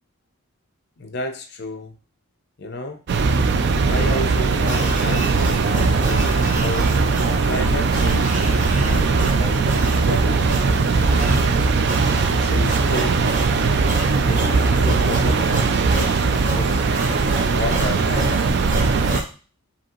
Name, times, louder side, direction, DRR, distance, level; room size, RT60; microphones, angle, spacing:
voice 1, 1.0-1.9 2.6-3.0 3.8-6.9 7.4-11.3 12.4-13.2 14.3-16.8 17.5-18.4, left 2 dB, 55° left, 6 dB, 0.5 m, -32 dB
sound 1, 3.1-19.2, right 4 dB, 55° right, 0.3 m, -19 dB
sound 2, 4.5-19.2, right 1 dB, 40° right, 0.9 m, -31 dB
4.9 x 2.8 x 2.9 m, 0.37 s
head